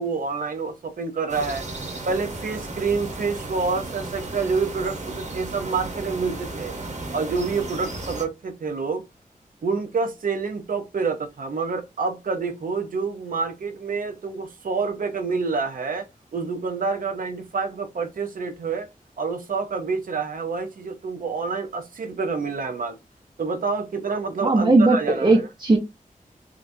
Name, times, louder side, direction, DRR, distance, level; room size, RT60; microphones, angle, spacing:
voice 1, 0.0-1.7 2.0-6.8 7.1-9.0 9.6-16.1 16.3-18.9 19.2-23.0 23.4-25.5, right 4 dB, 75° right, 0.6 m, -27 dB
sound 1, 1.3-8.2, right 2 dB, 55° right, 1.0 m, -34 dB
voice 2, 24.4-25.8, right 2 dB, 30° right, 0.7 m, -18 dB
3.7 x 2.3 x 2.6 m
wide cardioid pair, 85°, 14 cm